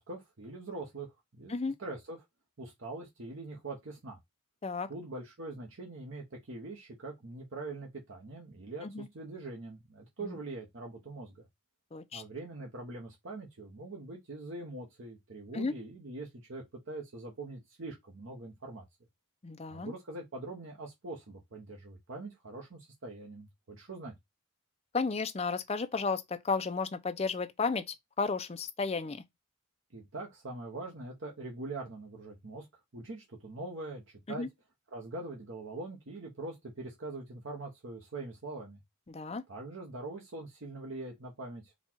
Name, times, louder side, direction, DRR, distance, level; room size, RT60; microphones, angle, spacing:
voice 1, 0.0-2.2 2.6-4.2 4.9-11.4 12.1-18.8 19.7-24.1 29.9-34.0 34.3-34.5 34.9-38.8 39.5-41.7, right 2 dB, 60° right, 0.9 m, -43 dB
voice 2, 11.9-12.2 15.5-15.7 19.4-19.9 24.9-27.8 28.2-29.2 34.3-34.5 39.1-39.4, left 4 dB, 30° left, 0.4 m, -33 dB
4.1 x 2.3 x 4.4 m
head